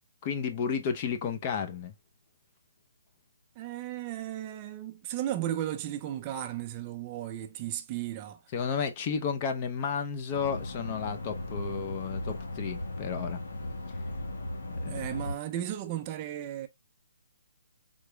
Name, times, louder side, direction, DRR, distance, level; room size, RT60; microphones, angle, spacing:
voice 1, 0.2-1.9 8.5-13.4 14.7-15.0, left 6 dB, 30° left, 0.6 m, -32 dB
voice 2, 3.6-8.4 14.9-16.7, right 12 dB, 25° right, 0.3 m, -35 dB
sound 1, 10.3-15.4, left 1 dB, 75° left, 1.1 m, -37 dB
3.8 x 3.0 x 2.2 m
hypercardioid pair, 160°, 0 cm